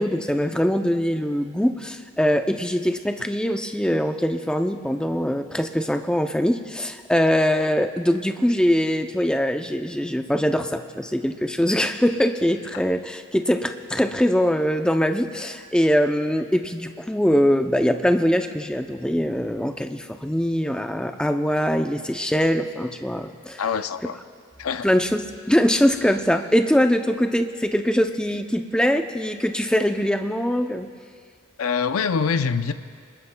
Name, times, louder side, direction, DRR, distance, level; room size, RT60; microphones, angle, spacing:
voice 1, 0.0-23.6 24.8-30.9, equal, 5° left, 7 dB, 0.4 m, -22 dB
voice 2, 23.6-24.2 24.6-24.9 31.6-32.7, left 6 dB, 85° left, 11 dB, 0.5 m, -24 dB
25.0 x 20.5 x 2.2 m, 2.1 s
head